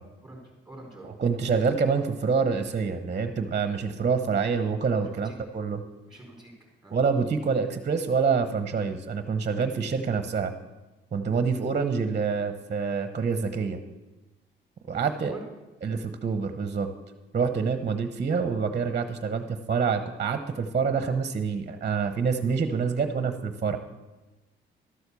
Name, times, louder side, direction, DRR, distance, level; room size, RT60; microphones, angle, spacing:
voice 1, 0.2-1.1 5.0-5.4 6.1-6.5 6.8-6.9 11.5-11.7 14.9-15.4, right 2 dB, 5° right, -1 dB, 4.3 m, -46 dB
voice 2, 1.2-5.8 6.9-10.5 11.1-13.8 14.9-15.3 15.8-16.9 17.3-23.8, right 5 dB, 35° right, 8 dB, 1.0 m, -26 dB
12.5 x 8.0 x 6.9 m, 1.1 s
cardioid pair, 90°, 20 cm